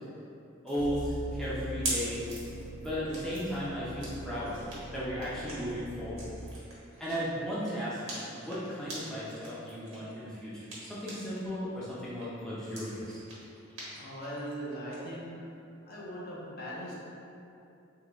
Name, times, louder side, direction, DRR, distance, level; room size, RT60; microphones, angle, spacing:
voice 1, 0.6-2.4 2.8-4.6 4.9-6.3 7.0-10.6 10.9-13.2, equal, 5° left, -10 dB, 0.5 m, -35 dB
Popping bubble plastic, 0.7-11.5 11.8-15.0, right 1 dB, 90° right, 1.0 m, -43 dB
sound 1, 0.8-6.5, equal, 65° right, 0.4 m, -42 dB
voice 2, 13.9-15.5 15.8-17.0, equal, 50° left, -7 dB, 0.7 m, -40 dB
3.7 x 2.2 x 3.0 m, 2.7 s
head